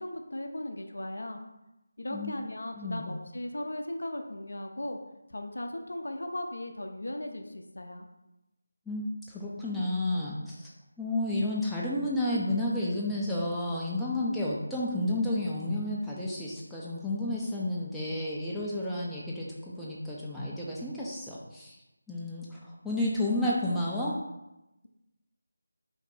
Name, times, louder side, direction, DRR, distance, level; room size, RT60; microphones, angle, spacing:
voice 1, 0.0-1.4 2.0-5.0 5.3-8.1, left 1 dB, 75° left, 4 dB, 0.4 m, -37 dB
voice 2, 2.8-3.1 8.9-10.7 11.0-21.8 22.1-24.2, left 1 dB, ahead, -8 dB, 0.3 m, -31 dB
2.6 x 2.1 x 3.9 m, 0.94 s
figure-of-eight pair, 165°, 0 cm